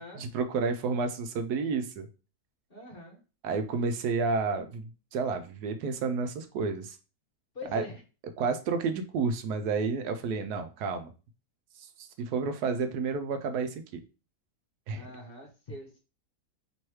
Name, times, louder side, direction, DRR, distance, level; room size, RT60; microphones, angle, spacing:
voice 1, 0.2-2.1 3.4-7.0 7.7-7.8 8.4-11.1 11.8-14.0 14.9-15.0, right 4 dB, 75° right, 7 dB, 1.1 m, -30 dB
voice 2, 2.7-3.2 7.5-8.0 14.9-16.0, left 1 dB, 45° left, 0 dB, 0.9 m, -43 dB
3.1 x 3.0 x 4.6 m, 0.33 s
omnidirectional pair, 1.7 m